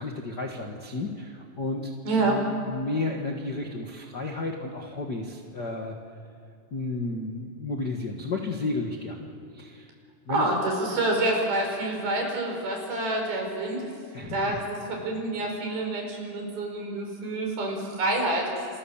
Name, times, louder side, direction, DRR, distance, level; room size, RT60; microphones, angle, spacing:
voice 1, 0.0-1.9 2.2-6.0 6.7-9.9 10.3-10.5 14.1-14.6, left 2 dB, 50° left, 2 dB, 1.2 m, -32 dB
voice 2, 2.0-2.4 10.3-13.8 14.3-14.6 14.9-18.5, right 2 dB, 65° right, 1 dB, 6.8 m, -27 dB
28.0 x 27.0 x 7.3 m, 2.5 s
omnidirectional pair, 4.6 m